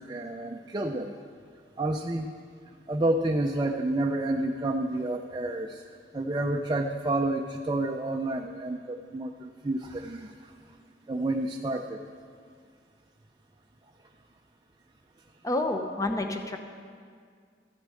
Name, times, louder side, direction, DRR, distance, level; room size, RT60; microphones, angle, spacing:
voice 1, 0.1-1.1 1.8-2.3 2.9-5.8 6.1-10.3 11.1-12.0, right 2 dB, 25° right, 2 dB, 0.5 m, -29 dB
voice 2, 15.4-16.6, left 2 dB, 20° left, 5 dB, 0.8 m, -29 dB
13.5 x 6.8 x 7.6 m, 2.1 s
head